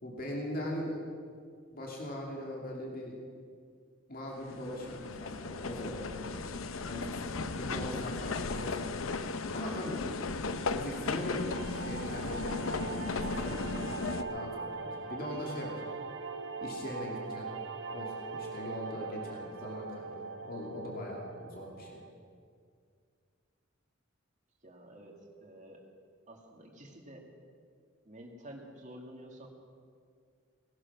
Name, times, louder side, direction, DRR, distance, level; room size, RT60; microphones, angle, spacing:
voice 1, 0.0-1.0 1.7-3.2 4.1-6.3 6.8-8.9 9.5-10.1 10.7-15.7 16.6-17.5 17.9-22.0, left 1 dB, 45° left, -1 dB, 2.5 m, -40 dB
sound 1, 4.4-14.2, left 3 dB, 85° left, 0.7 m, -36 dB
sound 2, 11.0-22.1, right 4 dB, 65° right, 1.0 m, -41 dB
voice 2, 24.6-25.8 26.3-27.3 28.1-29.5, right 1 dB, 40° right, 1 dB, 2.3 m, -50 dB
19.0 x 11.5 x 6.0 m, 2.2 s
head